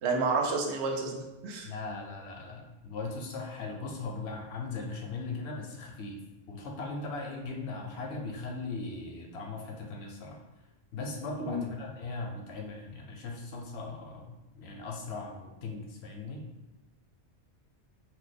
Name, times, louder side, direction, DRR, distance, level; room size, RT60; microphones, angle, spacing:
voice 1, 0.0-1.7 11.4-11.6, right 3 dB, 80° right, 0 dB, 0.9 m, -30 dB
voice 2, 1.6-6.2 6.5-10.4 10.9-16.4, left 3 dB, 75° left, 1 dB, 0.8 m, -39 dB
2.7 x 2.0 x 3.9 m, 1.1 s
omnidirectional pair, 1.2 m